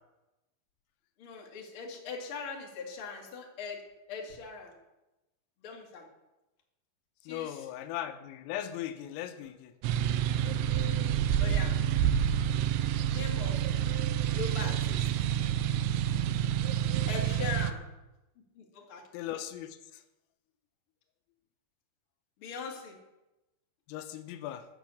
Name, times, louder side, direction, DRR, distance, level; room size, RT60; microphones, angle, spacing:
voice 1, 1.2-3.8 4.1-4.7 5.6-6.0 7.3-7.6 11.4-11.7 13.1-13.6 14.3-15.1 17.1-17.8 18.6-19.0 22.4-23.0, left 5 dB, 40° left, -1 dB, 2.0 m, -40 dB
voice 2, 7.3-9.7 19.1-19.8 23.9-24.7, left 11 dB, 85° left, 9 dB, 3.4 m, -38 dB
sound 1, 9.8-17.7, right 9 dB, 90° right, 2.6 m, -28 dB
12.5 x 8.3 x 7.1 m, 1.0 s
omnidirectional pair, 5.8 m